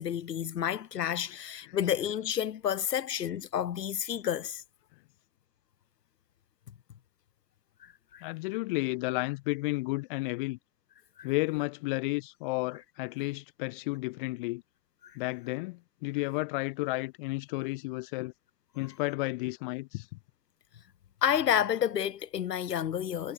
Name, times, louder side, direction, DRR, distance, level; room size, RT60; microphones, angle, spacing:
voice 1, 0.0-4.6 7.8-8.2 11.2-11.3 15.0-15.2 21.2-23.3, left 9 dB, 80° left, 7.9 m, -30 dB
voice 2, 8.2-10.6 11.2-14.6 15.2-18.3 18.8-20.1, left 24 dB, 30° left, 3.6 m, -32 dB
hypercardioid pair, 170°, 48 cm